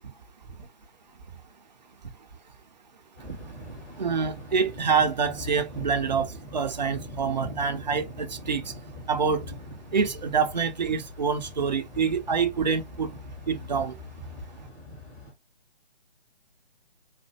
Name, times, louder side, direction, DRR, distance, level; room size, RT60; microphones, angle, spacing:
Thunder, 3.1-15.3, left 2 dB, 15° left, 0.7 m, -42 dB
voice 1, 4.0-8.6 9.1-9.4 9.9-13.1 13.5-13.9, right 5 dB, 45° right, 0.5 m, -26 dB
4.1 x 2.1 x 2.8 m
figure-of-eight pair, 145°, 32 cm